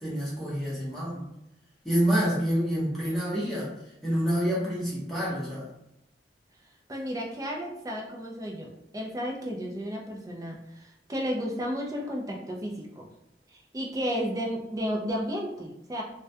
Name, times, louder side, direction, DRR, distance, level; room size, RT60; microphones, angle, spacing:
voice 1, 0.0-1.2 1.8-3.7 4.0-5.7, equal, ahead, -8 dB, 0.7 m, -27 dB
voice 2, 6.9-13.1 13.5-16.0, equal, 20° right, 0 dB, 0.3 m, -33 dB
2.2 x 2.2 x 2.7 m, 0.85 s
head